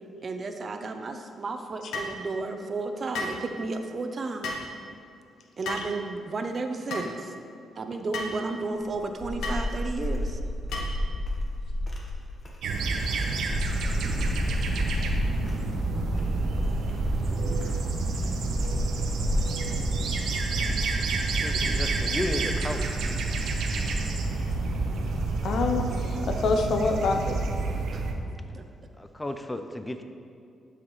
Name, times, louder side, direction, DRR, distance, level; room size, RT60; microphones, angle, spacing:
voice 1, 0.2-4.5 5.6-7.3 7.8-10.4 17.3-17.8 21.5-21.8 27.9-28.0 28.5-28.6, right 3 dB, 40° right, 6 dB, 0.6 m, -33 dB
sound 1, 1.9-2.2 3.1-3.4 4.4-4.7 5.6-5.9 6.9-7.1 8.1-8.4 9.4-9.6 10.7-11.0, left 2 dB, 90° left, 1.1 m, -33 dB
sound 2, 8.7-25.6, left 1 dB, 30° left, 1.3 m, -33 dB
sound 3, 12.6-28.1, right 3 dB, 80° right, 0.9 m, -28 dB
voice 2, 21.4-23.2 29.0-30.0, left 1 dB, 15° left, 7 dB, 0.4 m, -34 dB
voice 3, 25.4-27.4, left 3 dB, 65° left, 4 dB, 0.8 m, -26 dB
11.5 x 5.7 x 3.2 m, 2.5 s
cardioid pair, 105°, 0 cm